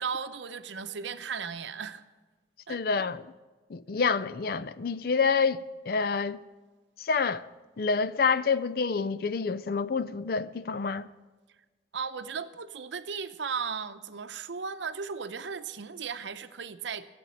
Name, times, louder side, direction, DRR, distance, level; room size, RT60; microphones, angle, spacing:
voice 1, 0.0-2.0 2.7-2.8 11.9-17.1, right 6 dB, 80° right, 0.7 m, -36 dB
voice 2, 2.7-3.2 3.7-5.6 5.9-6.4 7.0-7.4 7.8-11.1, left 5 dB, 55° left, 0.4 m, -27 dB
15.5 x 7.7 x 8.5 m
head